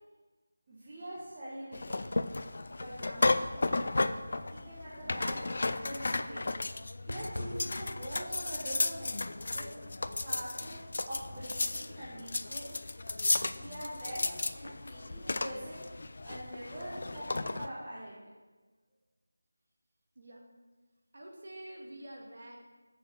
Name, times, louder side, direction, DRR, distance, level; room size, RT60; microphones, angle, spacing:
voice 1, 0.7-2.1 2.8-6.5 7.1-9.7 10.2-10.8 11.1-12.9 13.5-14.3 14.5-18.1, equal, 15° right, -10 dB, 1.1 m, -44 dB
sound 1, 1.7-17.7, left 2 dB, 35° left, 0.3 m, -34 dB
Fireworks, 7.1-12.1, left 1 dB, 80° left, 0.7 m, -46 dB
voice 2, 21.1-22.6, right 1 dB, 40° right, -1 dB, 1.7 m, -47 dB
6.9 x 6.7 x 6.5 m, 1.3 s
figure-of-eight pair, 180°, 0 cm